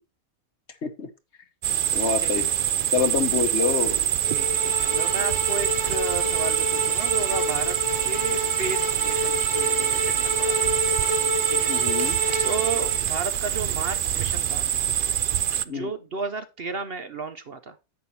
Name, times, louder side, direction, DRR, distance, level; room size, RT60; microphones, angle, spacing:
sound 1, 1.6-15.6, right 10 dB, 75° right, 0.4 m, -25 dB
voice 1, 1.9-2.4 2.9-4.0 11.7-12.2 15.7-15.9, left 6 dB, 55° left, 10 dB, 1.3 m, -26 dB
sound 2, 4.2-13.1, left 1 dB, 15° right, 1.0 m, -30 dB
voice 2, 4.2-7.8 8.0-10.7 11.5-11.7 12.4-14.7 15.6-17.8, right 4 dB, 50° right, 10 dB, 0.9 m, -33 dB
sound 3, 7.0-14.2, left 4 dB, 75° left, 2.6 m, -49 dB
10.5 x 8.3 x 2.8 m, 0.27 s
omnidirectional pair, 1.5 m